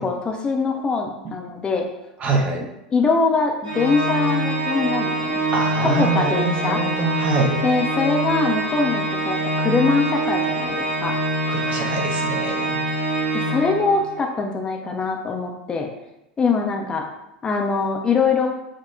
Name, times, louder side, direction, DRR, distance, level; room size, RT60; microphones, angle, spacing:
voice 1, 0.0-1.9 2.9-5.4 5.8-6.8 7.6-11.2 13.3-15.9 16.4-17.1 17.4-18.5, left 4 dB, 20° left, 2 dB, 0.4 m, -22 dB
voice 2, 2.2-2.7 5.5-7.6 11.5-12.8, right 3 dB, 30° right, 2 dB, 0.6 m, -24 dB
Organ, 3.6-14.3, right 1 dB, 70° right, 0.8 m, -24 dB
6.0 x 2.1 x 2.4 m, 0.90 s
figure-of-eight pair, 80°, 4 cm